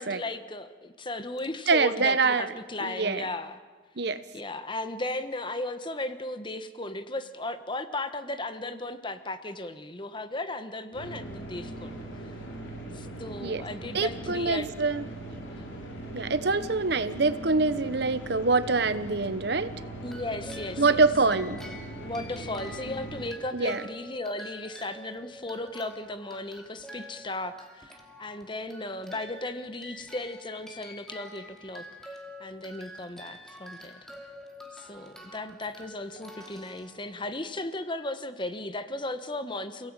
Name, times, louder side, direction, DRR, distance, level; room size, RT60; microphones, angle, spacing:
voice 1, 0.0-3.6 4.3-12.0 12.3-12.4 12.9-14.7 15.5-15.6 20.0-21.0 22.0-34.0 34.7-39.9, left 2 dB, 25° left, 10 dB, 1.2 m, -36 dB
voice 2, 1.7-2.5 2.8-3.2 4.0-4.2 13.4-13.6 13.9-15.1 16.1-19.7 20.8-21.6 23.5-23.8, right 3 dB, 55° right, 13 dB, 1.0 m, -25 dB
sound 1, 10.9-23.3, right 1 dB, 80° left, 6.0 m, -40 dB
sound 2, 20.0-37.5, left 1 dB, ahead, 2.7 m, -47 dB
29.0 x 17.5 x 9.0 m, 1.4 s
head